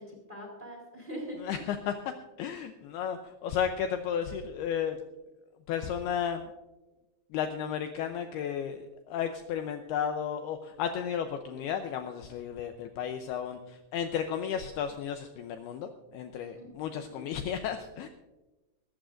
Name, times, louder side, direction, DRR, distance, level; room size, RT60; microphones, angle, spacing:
voice 1, 0.0-1.6 16.5-16.7 16.9-17.2, equal, 10° right, 0 dB, 3.2 m, -42 dB
voice 2, 1.4-2.1 2.4-5.0 5.7-6.5 7.3-18.1, left 8 dB, 85° left, 6 dB, 2.3 m, -33 dB
23.0 x 12.5 x 2.5 m, 1.1 s
omnidirectional pair, 5.3 m